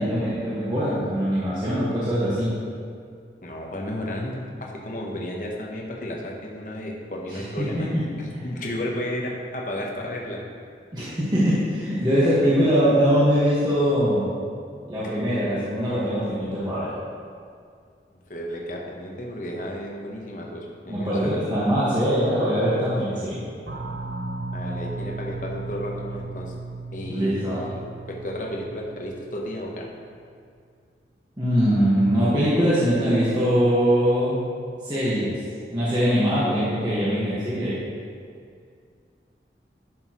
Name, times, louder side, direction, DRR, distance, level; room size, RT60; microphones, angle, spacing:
voice 1, 0.0-2.5 7.3-8.0 10.9-14.3 14.9-16.9 20.9-23.4 27.0-27.6 31.4-34.3 34.8-35.4 35.7-37.8, equal, 25° right, -10 dB, 1.5 m, -22 dB
voice 2, 3.4-10.4 18.3-21.4 24.5-26.5 26.9-29.9, left 1 dB, 50° left, -1 dB, 1.0 m, -33 dB
sound 1, 23.7-30.0, right 3 dB, 65° right, 0.7 m, -36 dB
11.0 x 6.3 x 3.1 m, 2.2 s
head